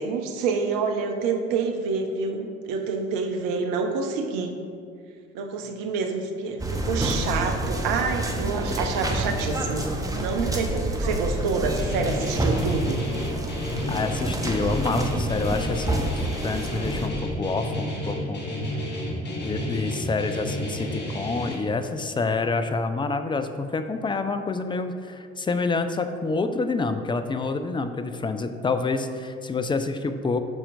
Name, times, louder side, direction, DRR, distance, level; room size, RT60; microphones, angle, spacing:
voice 1, 0.0-4.5 5.3-9.9 10.1-13.0, right 4 dB, 65° right, 5 dB, 0.8 m, -27 dB
sound 1, 6.6-17.1, right 1 dB, 10° right, 0.9 m, -28 dB
Guitar, 11.8-21.5, left 1 dB, 30° left, 1.5 m, -31 dB
voice 2, 13.9-16.0 16.4-18.4 19.4-30.4, left 3 dB, 15° left, 8 dB, 0.4 m, -27 dB
12.0 x 4.3 x 2.6 m, 2.3 s
hypercardioid pair, 55°, 34 cm